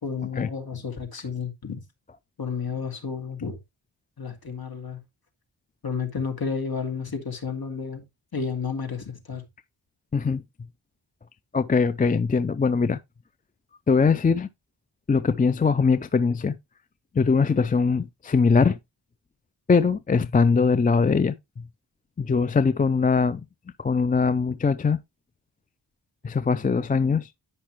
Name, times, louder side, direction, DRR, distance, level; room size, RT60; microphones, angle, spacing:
voice 1, 0.0-1.8 2.4-3.6 4.2-5.0 5.8-8.0 8.3-9.4, left 5 dB, 50° left, 2.3 m, -31 dB
voice 2, 10.1-10.4 11.5-13.0 13.9-14.5 15.1-16.6 17.1-18.8 19.7-21.3 22.2-23.4 23.8-25.0 26.2-27.3, left 5 dB, 20° left, 0.4 m, -21 dB
10.0 x 5.5 x 3.1 m
cardioid pair, 55°, 46 cm